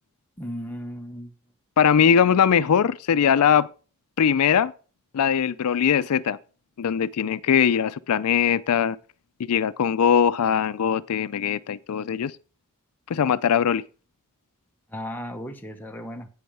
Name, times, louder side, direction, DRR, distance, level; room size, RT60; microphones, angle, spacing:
voice 1, 0.4-1.3 14.9-16.3, equal, 10° left, 0.9 m, -35 dB
voice 2, 1.8-3.7 4.2-4.7 5.1-6.4 6.8-9.0 9.5-12.3 13.1-13.8, left 8 dB, 80° left, 0.4 m, -21 dB
10.5 x 8.7 x 3.5 m
head